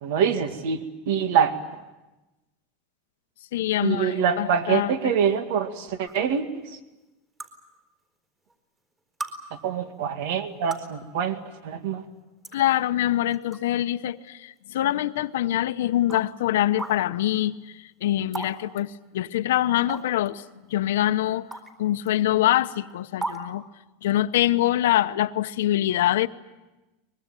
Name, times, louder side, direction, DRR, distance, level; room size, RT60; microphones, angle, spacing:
voice 1, 0.0-1.6 3.8-6.5 9.5-12.0, right 7 dB, 70° right, 8 dB, 2.1 m, -25 dB
voice 2, 3.5-5.1 12.5-21.5 21.8-23.6 24.0-26.3, left 13 dB, 85° left, 11 dB, 0.9 m, -24 dB
sound 1, 6.1-6.2 7.4-7.5 8.5-8.6 9.2-9.3 10.5-10.9 11.9-12.0 12.4-12.6 13.3-13.6 14.1-14.2 15.2-15.3 16.1-16.2 16.8-16.9 18.3-18.5 18.8-18.9 19.9-20.3 21.5-21.7 22.1-22.2 23.2-23.4, right 3 dB, 20° right, 4.1 m, -34 dB
24.0 x 21.5 x 9.1 m, 1.1 s
supercardioid pair, 140°, 0 cm